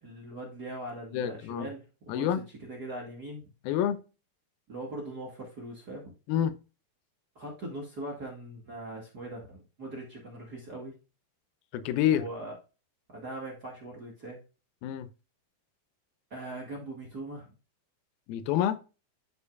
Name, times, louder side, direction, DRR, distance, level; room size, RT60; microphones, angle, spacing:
voice 1, 0.0-3.5 4.7-6.1 7.3-10.9 12.1-12.5 13.1-14.4 16.3-17.5, right 1 dB, 40° right, 1.5 m, -41 dB
voice 2, 1.1-1.7 2.1-2.4 3.7-4.0 6.3-6.5 11.7-12.2 14.8-15.1 18.3-18.8, left 10 dB, 90° left, 2.6 m, -27 dB
12.0 x 4.5 x 2.3 m
omnidirectional pair, 4.2 m